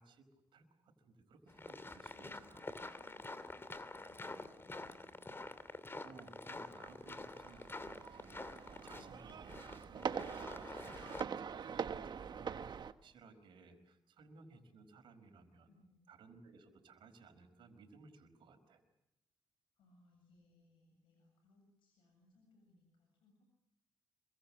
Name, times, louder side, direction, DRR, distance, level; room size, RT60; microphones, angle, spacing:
voice 1, 0.0-2.6 6.0-15.7 16.1-18.8, right 3 dB, 75° right, 7 dB, 4.9 m, -60 dB
sound 1, 1.5-11.2, left 2 dB, 30° left, 2.7 m, -48 dB
voice 2, 2.1-5.3 8.8-9.4 15.7-16.1 19.7-23.4, left 1 dB, 80° left, 3 dB, 7.8 m, -69 dB
sound 2, 6.7-12.9, right 7 dB, 60° right, 1.3 m, -44 dB
27.0 x 23.5 x 7.5 m, 0.83 s
supercardioid pair, 45°, 8 cm